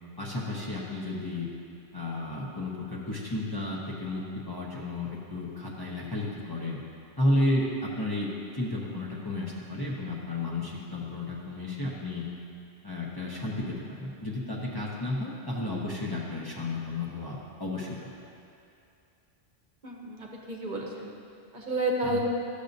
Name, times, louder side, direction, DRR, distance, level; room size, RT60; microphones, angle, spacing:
voice 1, 0.2-1.5 1.9-6.8 7.2-12.2 12.8-18.1 22.0-22.2, left 1 dB, 25° left, -5 dB, 0.8 m, -32 dB
voice 2, 19.8-21.1 21.5-22.2, right 2 dB, 50° right, -1 dB, 0.9 m, -31 dB
12.5 x 6.8 x 2.6 m, 2.6 s
omnidirectional pair, 1.1 m